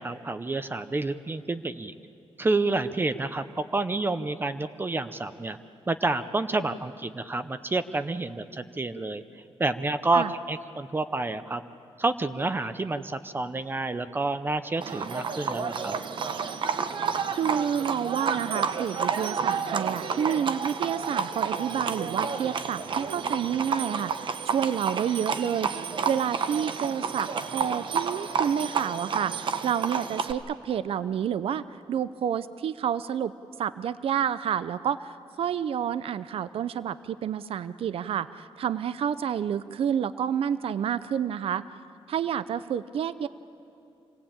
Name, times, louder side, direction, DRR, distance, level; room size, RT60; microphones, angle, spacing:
voice 1, 0.0-1.9 2.4-5.6 5.9-9.2 9.6-11.6 12.0-16.0, right 2 dB, 20° right, 11 dB, 0.6 m, -29 dB
Livestock farm animals working animals, 14.8-30.3, right 6 dB, 55° right, 1.0 m, -30 dB
voice 2, 17.3-33.3 33.6-41.6 42.1-43.3, right 8 dB, 70° right, 15 dB, 0.5 m, -29 dB
26.0 x 18.0 x 8.8 m, 2.7 s
wide cardioid pair, 145°, 10 cm